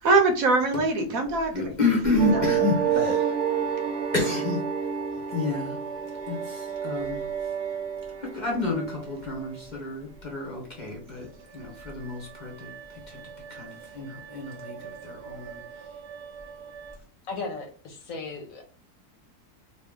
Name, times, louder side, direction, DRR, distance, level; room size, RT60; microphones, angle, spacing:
voice 1, 0.0-1.7 2.3-2.6 2.9-3.2, right 3 dB, 65° right, 1.0 m, -23 dB
voice 2, 1.5-3.3 4.1-4.6 5.3-5.8 6.3-7.2 8.2-11.3 11.5-12.7 13.1-13.2 13.5-14.7 15.0-15.6, left 3 dB, 35° left, 0.9 m, -29 dB
sound 1, 2.2-9.7 11.7-17.0, right 8 dB, 90° right, 1.2 m, -31 dB
voice 3, 17.3-18.6, left 3 dB, 65° left, 1.1 m, -36 dB
3.0 x 2.6 x 3.5 m
omnidirectional pair, 1.7 m